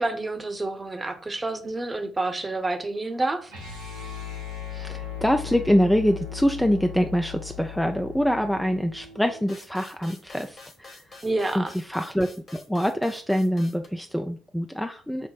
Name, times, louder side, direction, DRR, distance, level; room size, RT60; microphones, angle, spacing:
voice 1, 0.0-3.5 11.2-11.7, right 2 dB, 25° right, 6 dB, 0.8 m, -28 dB
sound 1, 3.5-9.5, left 8 dB, 85° right, 1.5 m, -38 dB
voice 2, 4.7-11.0 11.6-15.3, equal, 5° left, 6 dB, 0.3 m, -25 dB
sound 2, 9.5-13.9, left 3 dB, 40° left, 1.5 m, -48 dB
5.8 x 2.0 x 4.0 m, 0.43 s
figure-of-eight pair, 45°, 0 cm